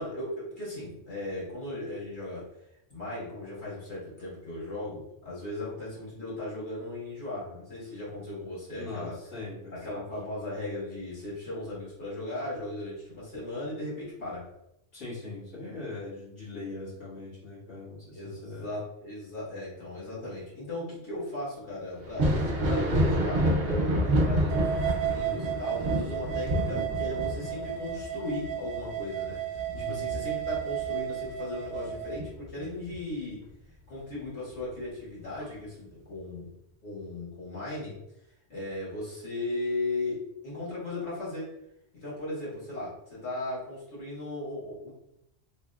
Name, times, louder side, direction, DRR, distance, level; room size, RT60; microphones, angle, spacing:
voice 1, 0.0-2.4 2.9-9.1 9.7-14.4 18.1-33.4 33.9-36.5 36.8-37.9 38.5-40.2 40.4-41.5 41.9-44.9, left 2 dB, 70° left, -7 dB, 2.0 m, -37 dB
voice 2, 8.7-10.0 14.9-18.7 29.7-30.0, left 3 dB, 85° left, -11 dB, 2.1 m, -41 dB
Thunder, 22.0-31.3 31.7-32.9 34.5-34.6 35.4-35.5, equal, 60° right, 0.9 m, -28 dB
sound 1, 24.5-32.2, right 11 dB, 85° right, 0.9 m, -33 dB
3.9 x 3.0 x 2.3 m, 0.82 s
omnidirectional pair, 1.2 m